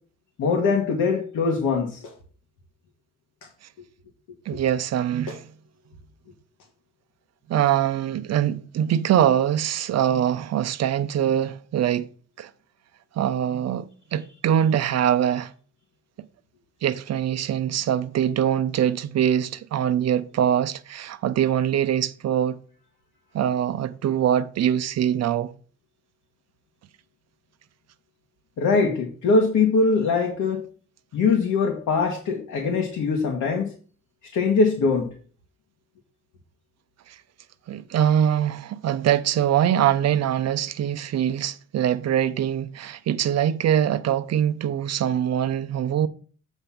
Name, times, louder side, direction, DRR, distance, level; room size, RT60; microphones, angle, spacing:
voice 1, 0.4-2.0 4.5-4.6 28.6-30.6 31.1-33.7 34.3-35.1, left 4 dB, 70° left, 1.5 m, -22 dB
Clapping, 2.0-2.3 3.4-3.6 4.8-4.9 5.3-5.5 6.6-6.7, left 2 dB, 90° left, 1.8 m, -42 dB
voice 2, 4.5-5.4 7.5-12.1 12.4-12.5 13.2-15.5 16.8-22.6 23.3-25.5 37.7-46.1, right 10 dB, 60° right, 0.6 m, -23 dB
8.0 x 3.5 x 5.8 m
cardioid pair, 90°, 30 cm